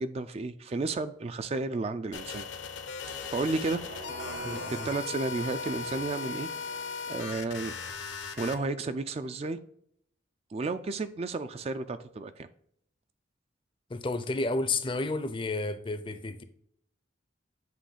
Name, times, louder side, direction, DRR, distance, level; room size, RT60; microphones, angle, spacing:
voice 1, 0.0-2.5 3.3-3.8 4.8-6.5 7.1-7.7 8.4-9.6 10.5-12.5, right 3 dB, 30° right, 0.3 m, -32 dB
sound 1, 2.1-8.6, left 5 dB, 75° left, 0.8 m, -38 dB
sound 2, 2.9-7.5, right 2 dB, 75° right, 0.9 m, -45 dB
voice 2, 4.4-4.9 13.9-16.4, left 3 dB, 25° left, 0.5 m, -31 dB
7.6 x 3.0 x 4.9 m
head